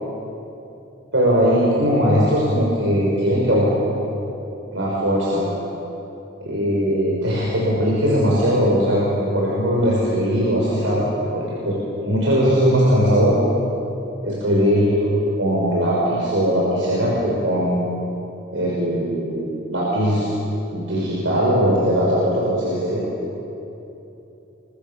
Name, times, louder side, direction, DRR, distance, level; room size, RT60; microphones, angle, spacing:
voice 1, 1.1-3.9 4.7-5.4 6.4-11.0 11.3-11.8 12.0-13.4 14.2-17.9 18.5-20.3 20.7-23.0, equal, 80° right, -5 dB, 6.1 m, -19 dB
29.0 x 24.5 x 7.3 m, 2.9 s
head